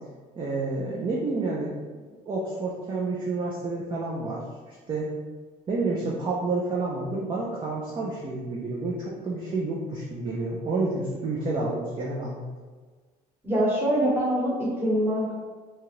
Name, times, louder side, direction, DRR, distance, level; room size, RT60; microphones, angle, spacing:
voice 1, 0.4-5.1 5.7-12.5, right 3 dB, 30° right, -4 dB, 0.5 m, -29 dB
voice 2, 13.4-15.3, equal, 15° right, -6 dB, 1.1 m, -24 dB
2.8 x 2.3 x 3.1 m, 1.4 s
cardioid pair, 110°, 17 cm